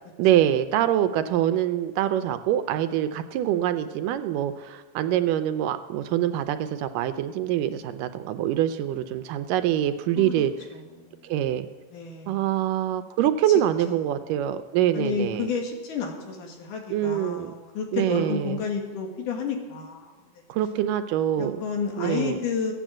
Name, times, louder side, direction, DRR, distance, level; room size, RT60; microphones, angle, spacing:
voice 1, 0.2-10.5 11.2-11.7 12.3-15.5 16.9-17.5 17.9-18.6 20.5-21.6 22.0-22.4, right 11 dB, 80° right, 10 dB, 2.1 m, -25 dB
voice 2, 10.2-10.5 10.7-11.3 11.9-12.7 13.9-14.0 14.9-20.4 21.4-22.7, left 5 dB, 70° left, 2 dB, 3.1 m, -31 dB
15.0 x 9.1 x 7.4 m, 1.3 s
omnidirectional pair, 4.0 m